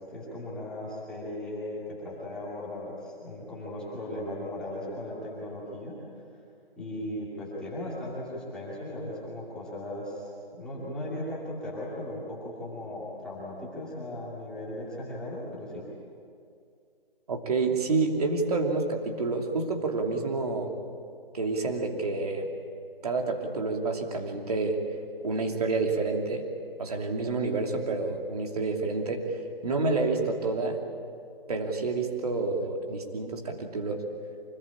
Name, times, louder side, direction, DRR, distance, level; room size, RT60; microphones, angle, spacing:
voice 1, 0.1-6.0 6.8-15.8, left 1 dB, 5° left, -8 dB, 2.5 m, -37 dB
voice 2, 17.3-20.7 21.3-22.5 23.0-24.8 25.2-26.4 26.8-29.2 29.6-30.8 31.5-34.0, right 3 dB, 40° right, 2 dB, 3.0 m, -28 dB
25.5 x 20.0 x 8.7 m, 2.4 s
hypercardioid pair, 175°, 30 cm